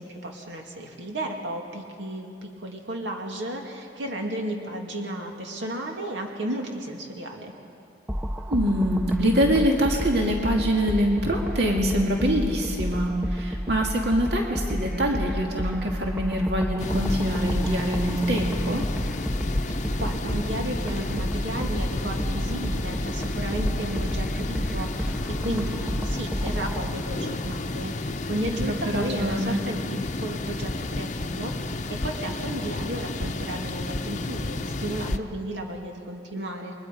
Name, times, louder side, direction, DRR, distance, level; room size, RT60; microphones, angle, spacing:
voice 1, 0.0-7.5 19.6-36.7, right 1 dB, 85° right, 1 dB, 2.5 m, -33 dB
sound 1, 8.1-26.9, equal, 5° right, 0.4 m, -31 dB
voice 2, 8.5-18.8 28.9-29.6, equal, 65° right, 0 dB, 2.3 m, -24 dB
sound 2, 16.8-35.2, left 2 dB, 40° left, 0.7 m, -31 dB
29.5 x 22.5 x 5.3 m, 2.5 s
head